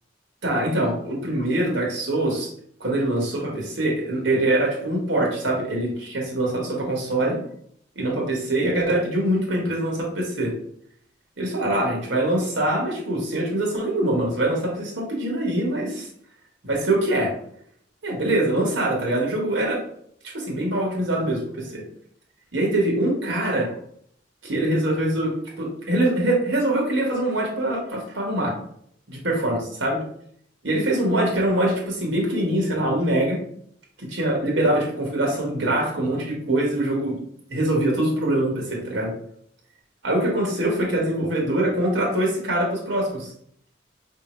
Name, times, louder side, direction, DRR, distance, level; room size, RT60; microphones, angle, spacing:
voice 1, 0.4-2.5 2.8-7.4 7.9-10.5 11.4-16.1 16.7-17.3 18.0-19.8 20.2-21.8 22.5-23.7 24.4-28.6 29.1-30.0 30.6-33.4 34.0-37.2 37.5-39.1 40.0-43.3, right 1 dB, 80° right, -1 dB, 1.3 m, -23 dB
5.3 x 2.8 x 3.1 m, 0.66 s
head